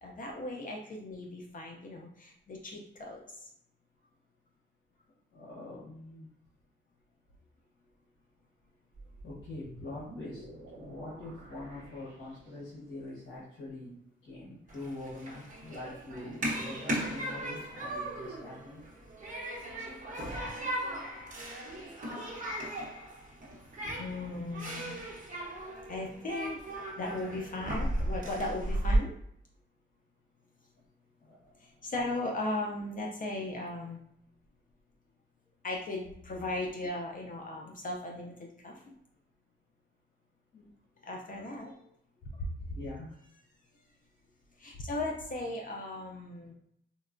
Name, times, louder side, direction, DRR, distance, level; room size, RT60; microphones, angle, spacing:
voice 1, 0.0-3.5 24.0-25.0 25.9-26.6 27.0-29.1 31.6-34.0 35.6-38.8 41.0-41.8 44.6-46.5, left 2 dB, 40° left, 0 dB, 0.4 m, -37 dB
voice 2, 5.3-6.3 9.2-10.4 10.7-13.9 14.3-18.8 31.3-31.4 40.5-40.7 42.7-43.1, left 2 dB, 65° left, -8 dB, 1.1 m, -44 dB
sound 1, 8.9-12.9, right 1 dB, 70° right, 0.8 m, -50 dB
Human group actions, 14.7-29.0, right 1 dB, 40° right, 0.9 m, -36 dB
3.9 x 2.1 x 2.4 m, 0.71 s
wide cardioid pair, 145°, 21 cm